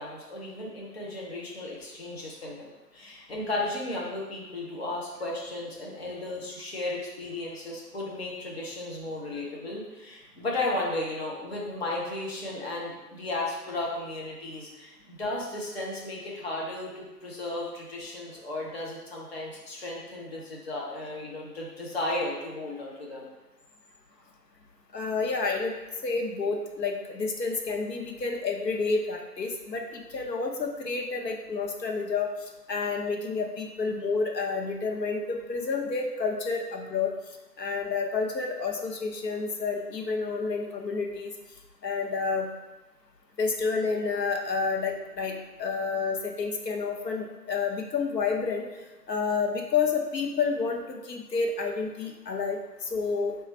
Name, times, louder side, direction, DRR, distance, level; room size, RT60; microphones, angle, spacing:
voice 1, 0.0-23.3, left 2 dB, 40° left, -3 dB, 0.7 m, -34 dB
voice 2, 24.9-25.7 26.0-32.3 32.7-37.1 37.6-41.3 41.8-42.5 43.4-48.7 49.1-53.4, left 4 dB, 80° left, 1 dB, 0.7 m, -29 dB
3.2 x 2.4 x 4.0 m, 1.1 s
figure-of-eight pair, 150°, 49 cm